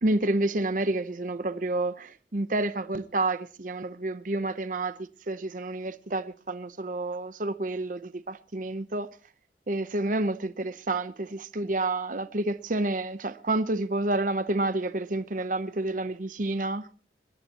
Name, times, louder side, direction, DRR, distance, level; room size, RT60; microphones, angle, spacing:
voice 1, 0.0-5.0 5.3-9.1 9.7-16.9, right 2 dB, 45° right, 0.8 m, -29 dB
22.0 x 17.0 x 2.9 m
head